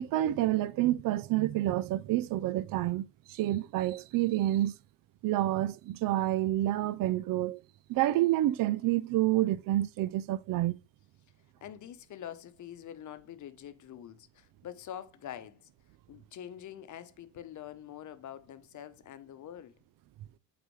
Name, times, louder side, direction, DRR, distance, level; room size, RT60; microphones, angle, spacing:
voice 1, 0.0-4.8 5.2-7.6 7.9-10.7, right 14 dB, 65° right, 0.5 m, -28 dB
voice 2, 11.6-15.7 16.1-19.8, left 10 dB, 55° left, 0.9 m, -45 dB
8.8 x 4.1 x 3.2 m
supercardioid pair, 80°, 37 cm